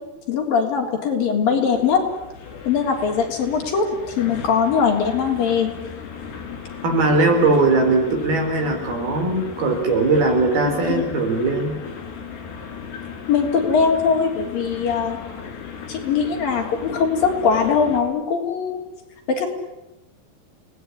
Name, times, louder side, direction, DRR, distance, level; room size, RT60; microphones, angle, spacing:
voice 1, 0.3-2.0 2.7-5.7 10.7-11.1 13.3-15.2 15.9-18.8 19.3-19.5, left 6 dB, 55° left, 2 dB, 5.2 m, -21 dB
sound 1, 1.7-18.0, left 6 dB, 80° left, 6.3 m, -36 dB
voice 2, 6.8-11.8, right 3 dB, 65° right, 4 dB, 6.2 m, -19 dB
29.5 x 19.5 x 9.9 m, 0.97 s
omnidirectional pair, 4.9 m